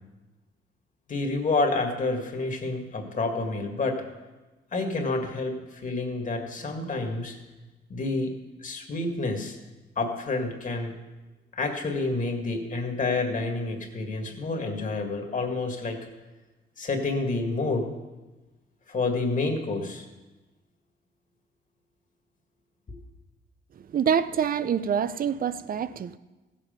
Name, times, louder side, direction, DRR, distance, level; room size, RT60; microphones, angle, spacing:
voice 1, 1.1-4.0 4.7-7.4 7.9-8.3 8.6-9.6 10.0-11.0 11.5-16.1 16.8-17.9 18.9-20.0, left 3 dB, 40° left, 2.0 m, -29 dB
voice 2, 23.9-26.2, right 8 dB, 45° right, 0.5 m, -26 dB
15.5 x 7.6 x 5.2 m
cardioid pair, 90°, 20 cm